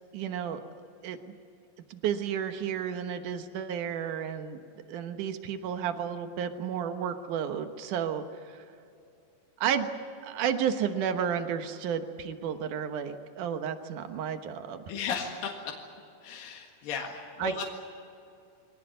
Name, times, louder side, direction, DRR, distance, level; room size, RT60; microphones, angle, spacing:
voice 1, 0.1-0.6 1.0-1.2 1.9-4.6 4.9-8.6 9.6-9.9 10.2-14.8 17.4-17.6, right 8 dB, 65° right, 8 dB, 2.1 m, -32 dB
voice 2, 14.9-15.7 16.2-17.6, left 6 dB, 60° left, 0 dB, 3.2 m, -35 dB
23.5 x 18.5 x 9.3 m, 2.6 s
omnidirectional pair, 5.0 m